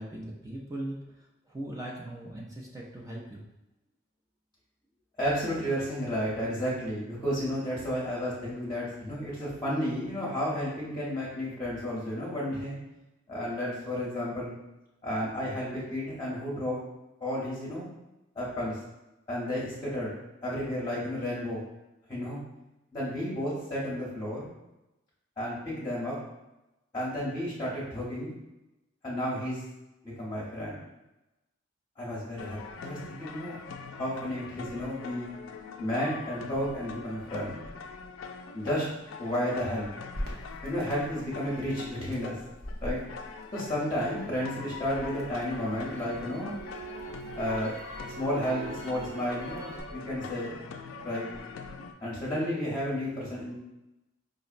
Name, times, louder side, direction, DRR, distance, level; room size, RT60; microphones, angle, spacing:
voice 1, 0.0-3.4, right 1 dB, 15° right, -3 dB, 0.3 m, -40 dB
voice 2, 5.2-12.8 13.3-14.5 15.0-16.8 17.2-17.9 18.4-18.8 19.3-21.6 22.1-22.4 22.9-24.5 25.4-26.2 26.9-28.3 29.0-29.6 30.0-30.8 32.0-33.6 33.9-35.3 35.8-37.5 38.5-38.8 39.2-39.9 40.6-42.3 42.8-43.0 43.5-46.6 47.3-47.7 48.1-50.6 51.0-51.3 52.0-53.5, equal, 20° left, -7 dB, 0.7 m, -32 dB
sound 1, 32.4-51.9, left 4 dB, 75° left, 0.3 m, -43 dB
Crackle, 40.1-44.3 44.7-49.8, right 1 dB, 50° right, 0.8 m, -42 dB
4.9 x 2.0 x 2.4 m, 0.97 s
head